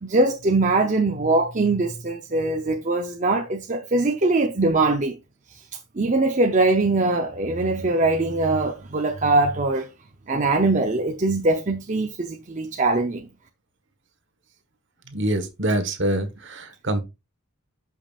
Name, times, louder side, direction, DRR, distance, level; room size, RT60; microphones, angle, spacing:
voice 1, 0.0-5.2 6.0-9.9 10.3-13.3, right 2 dB, 35° right, 0.7 m, -22 dB
voice 2, 15.1-17.0, right 1 dB, 55° right, 1.4 m, -25 dB
12.5 x 5.4 x 2.4 m
head